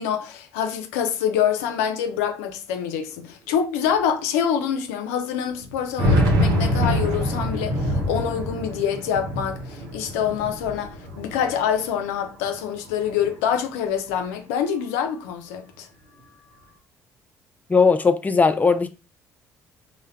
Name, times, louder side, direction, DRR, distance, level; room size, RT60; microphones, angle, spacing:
voice 1, 0.0-15.9, left 8 dB, 85° left, 0.4 m, -26 dB
sound 1, 2.1-2.2 2.3-2.4 3.3-3.4 3.9-4.0 5.6-12.0 12.4-13.4, equal, 65° right, 0.9 m, -25 dB
voice 2, 17.7-18.9, left 5 dB, 20° left, 0.4 m, -18 dB
2.2 x 2.0 x 3.3 m
hypercardioid pair, 55°, 7 cm